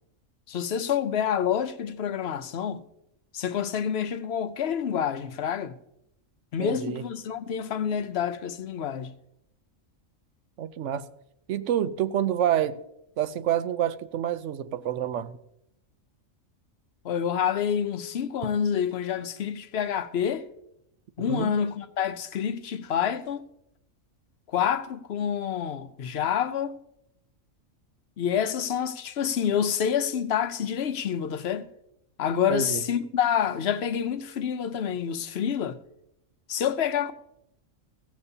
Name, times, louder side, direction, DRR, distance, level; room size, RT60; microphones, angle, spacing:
voice 1, 0.5-2.8 3.3-5.7 6.5-9.1 17.0-20.5 21.2-23.4 24.5-26.8 28.2-31.7 32.2-35.8 36.5-37.1, left 8 dB, 60° left, 0.9 m, -28 dB
voice 2, 6.6-7.0 10.6-11.0 11.5-12.8 13.2-15.3 21.3-21.6 32.5-32.8, right 10 dB, 70° right, 1.0 m, -27 dB
16.0 x 13.5 x 2.8 m
omnidirectional pair, 1.4 m